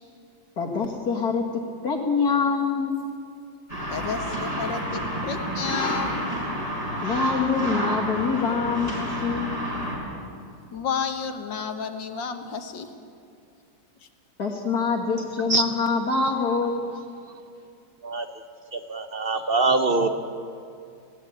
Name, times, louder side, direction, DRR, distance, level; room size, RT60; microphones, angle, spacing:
voice 1, 0.6-1.4 1.8-3.0 7.0-9.7 14.4-17.0, left 5 dB, 55° left, 1 dB, 2.4 m, -25 dB
sound 1, 3.7-10.0, equal, 20° right, 5.5 m, -29 dB
voice 2, 3.9-6.3 10.7-12.9, left 6 dB, 80° left, 7 dB, 2.1 m, -31 dB
voice 3, 18.7-20.1, right 3 dB, 40° right, 8 dB, 0.8 m, -23 dB
19.5 x 16.5 x 8.9 m, 2.4 s
omnidirectional pair, 2.0 m